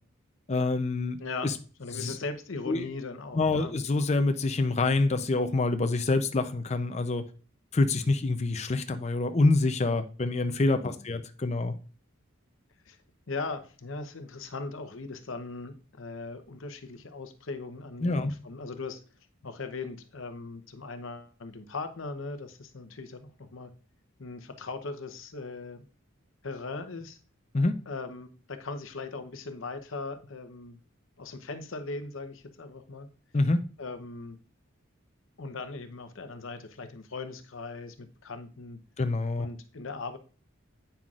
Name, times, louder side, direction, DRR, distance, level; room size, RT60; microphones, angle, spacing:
voice 1, 0.5-1.2 1.4-1.5 1.9-2.1 2.7-2.9 3.3-7.2 7.7-11.7 18.0-18.3 27.5-27.8 33.3-33.6 39.0-39.5, left 2 dB, 35° left, 0.5 m, -26 dB
voice 2, 1.8-3.7 10.8-11.0 12.9-13.0 13.3-19.0 19.4-23.7 24.2-25.8 26.4-27.2 27.9-30.8 31.2-33.1 33.8-34.4 35.4-38.8 39.4-40.2, left 3 dB, 75° left, 0.8 m, -39 dB
9.0 x 5.6 x 2.4 m
head